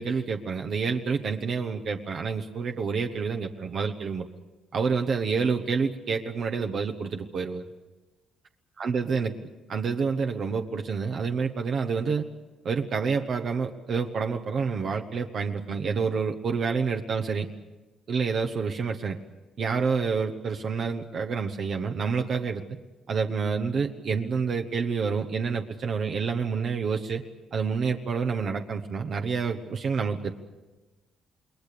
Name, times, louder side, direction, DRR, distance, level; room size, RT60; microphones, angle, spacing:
voice 1, 0.0-4.3 4.7-7.7 8.8-9.3 9.7-12.2 12.6-17.5 18.1-19.2 19.6-22.6 23.1-27.2 27.5-30.3, right 5 dB, 60° right, 4 dB, 1.2 m, -28 dB
28.5 x 20.5 x 6.9 m, 1.1 s
cardioid pair, 90°, 0 cm